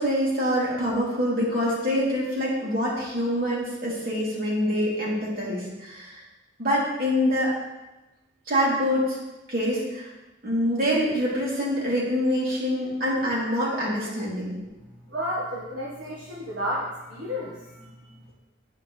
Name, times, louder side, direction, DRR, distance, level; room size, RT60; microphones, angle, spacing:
voice 1, 0.0-6.2 6.6-7.5 8.5-9.2 9.5-10.1 10.4-14.6, equal, 50° right, -5 dB, 3.3 m, -25 dB
voice 2, 14.6-18.2, equal, 75° right, -6 dB, 1.7 m, -33 dB
9.8 x 9.2 x 3.4 m, 1.0 s
head